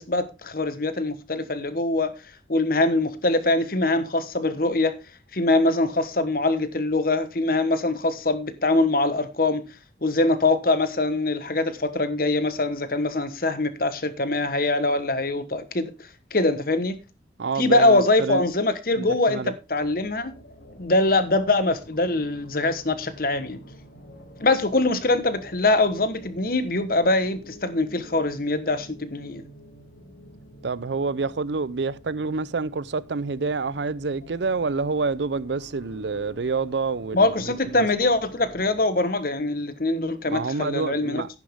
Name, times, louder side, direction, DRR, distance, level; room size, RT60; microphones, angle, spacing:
voice 1, 0.0-2.1 2.5-5.0 5.3-9.7 10.0-15.9 16.3-17.0 17.6-19.4 19.7-20.3 20.7-23.6 24.4-29.4 37.1-41.2, left 2 dB, 50° left, 1.2 m, -23 dB
voice 2, 17.4-18.4 19.0-19.5 30.6-37.9 40.3-41.3, right 4 dB, 75° right, 0.6 m, -28 dB
sound 1, 19.8-38.8, equal, 75° left, 4.1 m, -48 dB
10.5 x 10.5 x 3.6 m
head